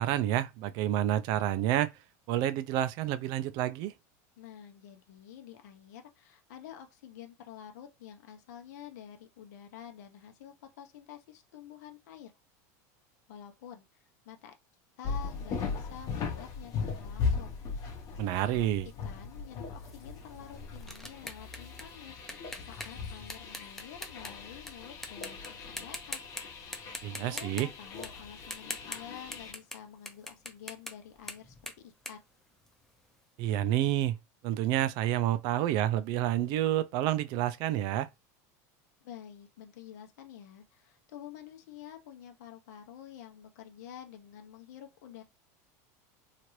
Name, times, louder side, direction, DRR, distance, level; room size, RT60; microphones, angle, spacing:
voice 1, 0.0-1.9 2.3-3.9 18.2-18.9 27.0-27.7 33.4-34.2 34.4-38.1, right 12 dB, 55° right, 0.4 m, -29 dB
voice 2, 4.4-12.3 13.3-14.5 15.0-17.6 19.0-22.2 22.7-26.2 27.1-32.2 39.0-45.2, left 9 dB, 80° left, 0.8 m, -49 dB
sound 1, 15.0-29.5, left 5 dB, 40° left, 0.9 m, -38 dB
sound 2, 19.8-24.7 25.0-25.5 25.8-26.4 26.7-33.1, left 1 dB, 5° left, 0.5 m, -43 dB
2.9 x 2.4 x 3.1 m
supercardioid pair, 135°, 9 cm